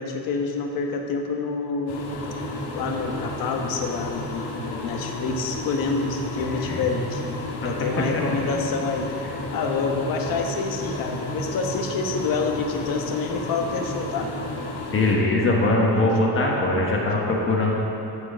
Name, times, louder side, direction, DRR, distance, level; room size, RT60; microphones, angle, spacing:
voice 1, 0.0-2.0 2.7-9.1 9.5-14.3 15.9-16.1, left 4 dB, 55° left, 3 dB, 1.2 m, -27 dB
sound 1, 1.9-15.2, left 1 dB, 80° left, 1.7 m, -32 dB
voice 2, 6.4-6.8 8.1-8.2 14.9-17.7, left 2 dB, 30° left, -2 dB, 1.4 m, -22 dB
13.5 x 4.8 x 7.4 m, 2.8 s
cardioid pair, 170°, 40 cm